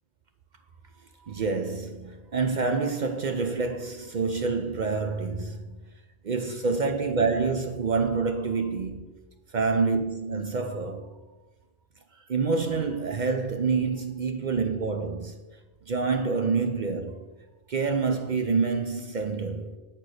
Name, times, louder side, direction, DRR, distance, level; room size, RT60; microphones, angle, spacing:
voice 1, 1.2-5.8 6.2-9.0 9.5-11.1 12.3-15.4 15.9-17.2 17.7-19.8, right 4 dB, 55° right, 0.5 m, -27 dB
7.9 x 4.5 x 6.3 m
omnidirectional pair, 1.5 m